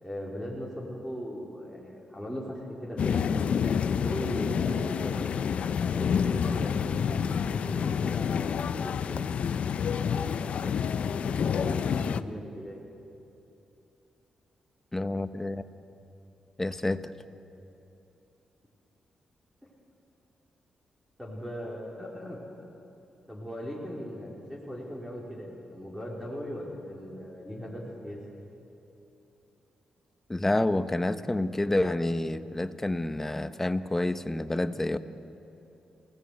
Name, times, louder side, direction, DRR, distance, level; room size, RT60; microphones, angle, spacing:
voice 1, 0.0-5.3 5.9-9.3 9.9-12.8 21.2-22.4 23.3-28.2, equal, 5° right, -4 dB, 4.0 m, -38 dB
sound 1, 3.0-12.2, left 7 dB, 65° left, 0.6 m, -28 dB
voice 2, 14.9-15.6 16.6-17.1 30.3-35.0, left 1 dB, 15° left, 11 dB, 1.0 m, -28 dB
28.5 x 18.0 x 8.1 m, 2.8 s
cardioid pair, 95°, 2 cm